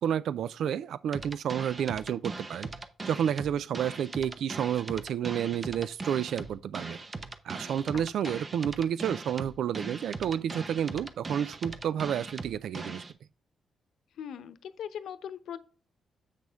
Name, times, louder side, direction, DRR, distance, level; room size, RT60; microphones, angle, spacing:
voice 1, 0.0-2.7 3.1-7.0 7.4-13.0, right 9 dB, 75° right, 0.3 m, -30 dB
sound 1, 1.1-13.1, right 3 dB, 25° right, 0.9 m, -40 dB
voice 2, 14.2-15.6, left 9 dB, 80° left, 0.8 m, -40 dB
8.1 x 6.2 x 3.5 m
cardioid pair, 130°, 0 cm